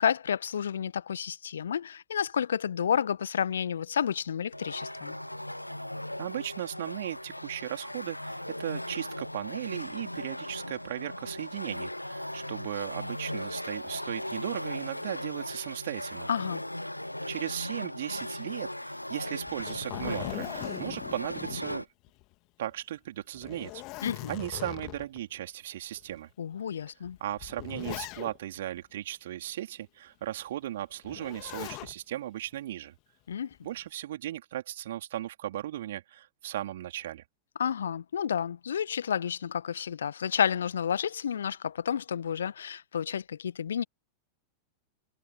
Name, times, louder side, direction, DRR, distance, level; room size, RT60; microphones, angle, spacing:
voice 1, 0.0-5.2 16.3-16.6 24.0-24.3 26.4-27.2 33.3-33.5 37.6-43.8, left 8 dB, 65° left, 1.4 m, -30 dB
sound 1, 4.5-21.9, left 1 dB, 85° left, 1.0 m, -38 dB
voice 2, 6.2-16.3 17.3-21.9 22.6-23.8 24.3-26.3 27.2-32.9 33.6-37.2, right 13 dB, 60° right, 4.1 m, -37 dB
Zipper (clothing), 19.4-22.3 22.7-22.8 23.3-25.2 26.0-26.1 27.0-28.6 31.0-31.9 33.3-33.8, left 23 dB, 40° left, 2.0 m, -40 dB
figure-of-eight pair, 90°, 0 cm